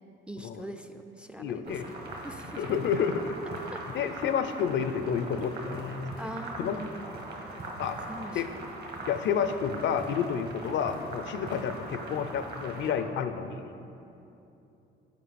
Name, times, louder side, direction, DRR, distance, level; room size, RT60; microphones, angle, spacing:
voice 1, 0.3-2.7 3.7-3.8 6.2-7.1 8.1-8.4, right 1 dB, 5° right, 7 dB, 0.3 m, -42 dB
voice 2, 1.4-1.8 2.6-3.4 3.9-6.1 6.6-6.8 7.8-8.0 8.3-8.5 9.1-13.6, left 7 dB, 65° left, 10 dB, 0.4 m, -30 dB
sound 1, 1.7-12.9, right 2 dB, 55° right, 1.4 m, -41 dB
8.4 x 4.6 x 4.2 m, 2.8 s
cardioid pair, 90°, 20 cm